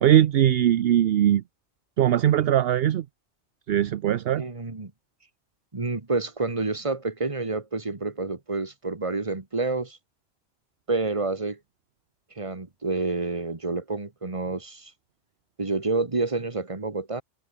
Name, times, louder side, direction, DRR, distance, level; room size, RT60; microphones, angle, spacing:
voice 1, 0.0-1.4 2.0-3.0 3.7-4.4, right 11 dB, 65° right, 0.8 m, -20 dB
voice 2, 4.3-4.9 5.7-10.0 10.9-11.6 12.4-14.9 15.6-17.2, right 3 dB, 30° right, 1.8 m, -28 dB
omnidirectional pair, 1.2 m